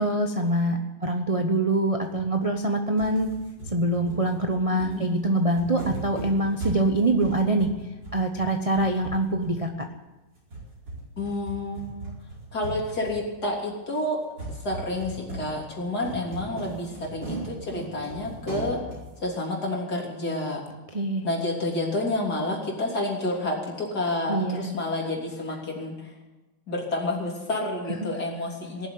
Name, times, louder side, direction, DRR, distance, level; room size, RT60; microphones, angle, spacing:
voice 1, 0.0-3.3 3.7-7.7 8.1-9.7 20.9-21.3 24.3-24.8 28.0-28.1, right 1 dB, 25° right, 3 dB, 0.8 m, -24 dB
sound 1, 2.1-2.7 3.0-9.9 10.4-13.6 14.4-19.3, right 2 dB, 70° right, 5.6 m, -39 dB
voice 2, 4.7-5.1 11.2-12.1 12.5-14.2 14.5-18.8 19.2-20.6 21.2-26.1 26.7-28.9, left 2 dB, 55° left, -2 dB, 3.9 m, -29 dB
19.0 x 7.6 x 9.5 m, 1.1 s
omnidirectional pair, 2.0 m